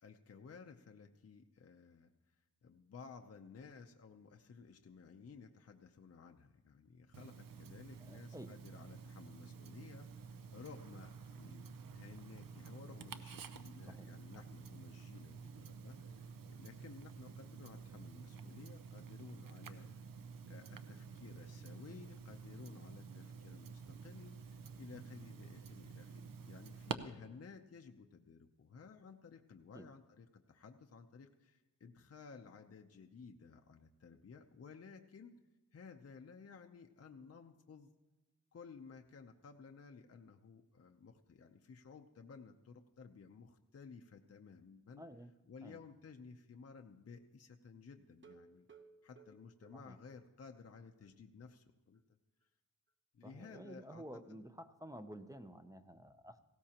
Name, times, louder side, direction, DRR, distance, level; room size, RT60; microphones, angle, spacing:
voice 1, 0.0-2.4 2.6-20.1 20.4-35.3 35.7-37.9 38.5-45.0 45.5-48.7 49.0-52.0 53.1-54.0 54.3-54.4, left 5 dB, 45° left, 4 dB, 0.7 m, -56 dB
Tick-tock, 7.1-26.9, right 6 dB, 70° right, 0.7 m, -50 dB
voice 2, 8.0-8.6 13.9-14.1 14.5-14.6 29.7-29.9 45.0-45.3 45.6-45.8 49.7-50.0 53.2-56.4, equal, 10° right, 8 dB, 0.6 m, -52 dB
sound 1, 48.1-50.7 51.0-51.1 51.5-51.6 51.9-52.0, right 5 dB, 35° right, 1.0 m, -62 dB
18.5 x 16.5 x 2.9 m, 1.1 s
wide cardioid pair, 115°, 35 cm